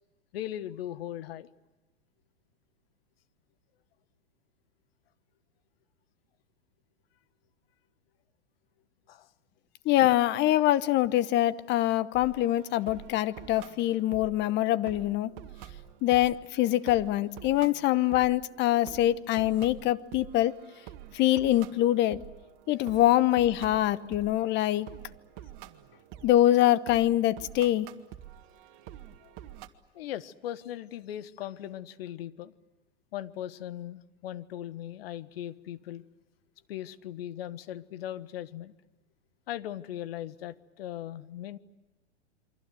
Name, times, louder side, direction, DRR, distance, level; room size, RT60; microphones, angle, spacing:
voice 1, 0.3-1.5 9.1-9.3 29.2-29.3 29.9-32.5 33.1-36.0 36.7-38.7 39.5-41.6, left 12 dB, 55° left, 14 dB, 1.4 m, -39 dB
voice 2, 9.8-15.3 16.0-20.5 21.1-22.2 22.7-24.9 26.2-27.9, left 14 dB, 30° left, 16 dB, 1.0 m, -24 dB
sound 1, 12.1-29.7, right 11 dB, 45° right, 1.9 m, -48 dB
28.0 x 24.5 x 7.8 m, 1.1 s
hypercardioid pair, 105°, 34 cm